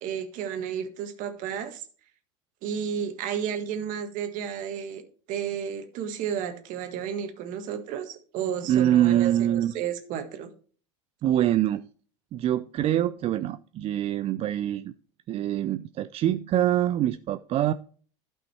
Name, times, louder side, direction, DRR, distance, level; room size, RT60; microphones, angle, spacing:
voice 1, 0.0-1.8 2.6-5.0 5.3-10.5, right 8 dB, 55° right, 1.6 m, -32 dB
voice 2, 8.7-9.7 11.2-11.8 12.3-14.9 15.3-17.7, right 12 dB, 40° right, 0.5 m, -24 dB
12.0 x 5.6 x 4.4 m
hypercardioid pair, 90°, 16 cm